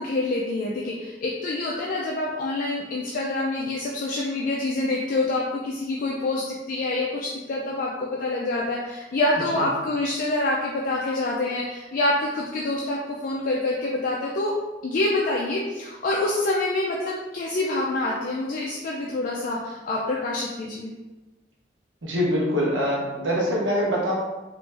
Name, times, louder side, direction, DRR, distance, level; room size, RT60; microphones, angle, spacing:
voice 1, 0.0-14.5 14.8-20.9, left 2 dB, 50° left, -3 dB, 0.4 m, -26 dB
voice 2, 22.0-24.1, equal, 90° right, -3 dB, 0.8 m, -24 dB
3.1 x 2.5 x 3.3 m, 1.1 s
head